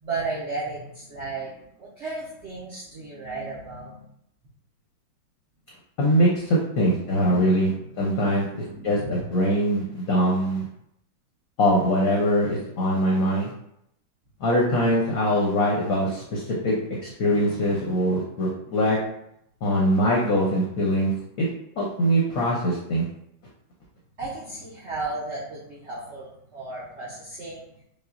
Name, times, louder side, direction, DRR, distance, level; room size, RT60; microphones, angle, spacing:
voice 1, 0.0-1.5 1.8-4.1 6.8-8.0 8.6-9.2 18.6-18.8 24.2-27.7, right 3 dB, 65° right, -7 dB, 0.6 m, -34 dB
voice 2, 6.0-7.7 8.0-10.6 11.6-13.5 14.4-16.7 17.0-19.0 19.6-21.1 21.4-21.5 21.8-23.0, equal, 60° left, -4 dB, 0.9 m, -22 dB
5.3 x 2.3 x 2.5 m, 0.76 s
omnidirectional pair, 2.2 m